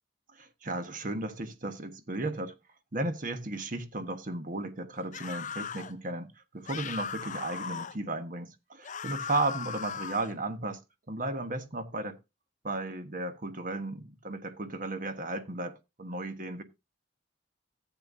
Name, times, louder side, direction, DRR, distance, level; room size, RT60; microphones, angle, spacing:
voice 1, 0.4-2.5 2.9-10.8 11.1-12.2 12.6-16.6, right 2 dB, 45° right, 1.3 m, -35 dB
sound 1, 5.1-5.9 6.7-8.0 8.8-10.3, left 6 dB, 40° left, 0.6 m, -38 dB
14.5 x 8.4 x 2.6 m
head